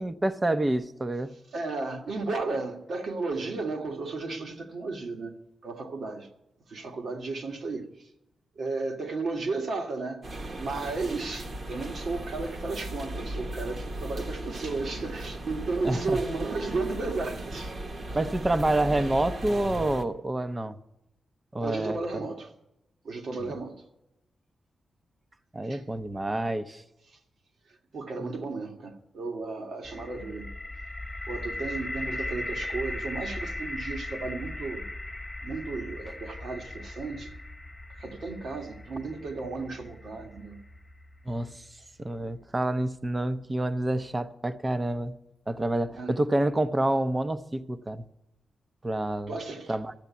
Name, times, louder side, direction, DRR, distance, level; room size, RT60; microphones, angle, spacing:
voice 1, 0.0-1.3 15.8-16.2 18.1-20.8 21.5-22.0 23.4-23.6 25.5-26.8 28.2-28.4 41.3-41.6 42.0-45.1 45.5-48.0 48.8-49.3 49.7-49.9, right 1 dB, 20° right, 0.7 m, -28 dB
voice 2, 1.5-6.3 6.7-8.1 8.6-10.2 10.6-17.7 21.6-22.5 23.0-23.8 25.7-25.8 27.9-30.5 31.3-34.8 35.4-37.3 37.9-40.6 45.9-46.1 49.3-49.8, right 3 dB, 65° right, 1.8 m, -34 dB
sound 1, 10.2-20.0, right 1 dB, 45° right, 1.2 m, -37 dB
sound 2, 29.8-41.7, left 2 dB, 5° left, 0.9 m, -38 dB
13.5 x 8.0 x 8.5 m
wide cardioid pair, 145°, 0 cm